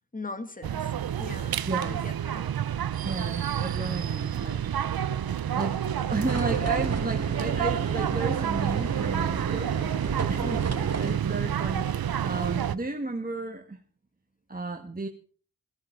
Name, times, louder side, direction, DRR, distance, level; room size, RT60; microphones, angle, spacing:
voice 1, 0.1-0.9 1.2-2.5 10.4-10.6, left 2 dB, 20° left, 1.7 m, -40 dB
sound 1, 0.6-12.8, right 9 dB, 70° right, 0.8 m, -29 dB
voice 2, 1.6-2.0 3.0-4.6 5.5-9.7 10.3-13.8 14.5-15.1, right 2 dB, 25° right, 1.5 m, -33 dB
sound 2, 6.2-11.2, right 4 dB, 40° right, 1.6 m, -32 dB
17.5 x 14.0 x 4.5 m
wide cardioid pair, 80°, 38 cm